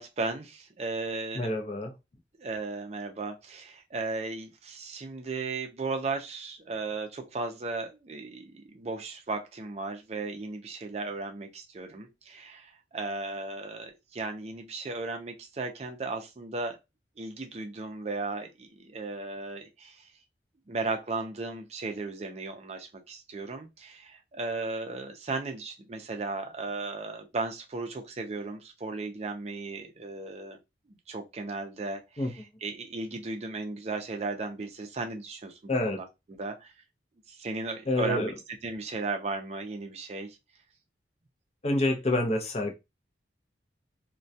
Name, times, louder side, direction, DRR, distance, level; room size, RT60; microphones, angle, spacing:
voice 1, 0.0-1.5 2.4-16.8 17.2-20.1 20.7-30.6 31.1-36.0 36.4-36.7 37.3-38.2 38.6-40.4, right 3 dB, 35° right, 0.4 m, -36 dB
voice 2, 1.3-1.9 32.2-32.3 35.7-36.0 37.9-38.3 41.6-42.7, left 1 dB, 35° left, 0.5 m, -27 dB
2.2 x 2.2 x 2.6 m
head